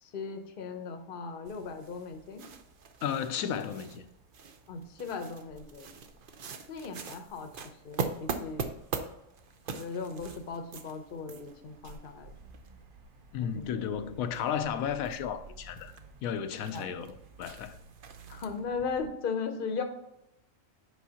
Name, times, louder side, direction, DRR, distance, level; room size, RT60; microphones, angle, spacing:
voice 1, 0.0-2.4 4.7-5.9 6.7-7.5 7.8-8.7 9.7-12.3 13.4-14.1 16.7-16.9 18.3-19.8, left 5 dB, 45° left, 0.9 m, -37 dB
sound 1, 1.4-19.1, right 5 dB, 50° right, 0.7 m, -43 dB
voice 2, 3.0-4.0 13.3-15.9 16.2-17.8, left 8 dB, 80° left, 1.1 m, -33 dB
8.2 x 5.1 x 2.9 m
omnidirectional pair, 1.4 m